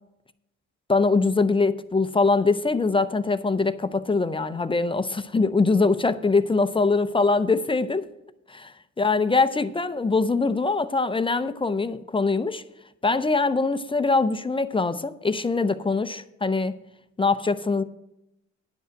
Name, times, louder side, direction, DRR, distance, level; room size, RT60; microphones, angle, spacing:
voice 1, 0.9-8.0 8.5-12.6 13.0-16.8 17.2-17.8, left 3 dB, 15° left, 0.5 m, -23 dB
10.5 x 5.6 x 7.5 m
cardioid pair, 90°, 30 cm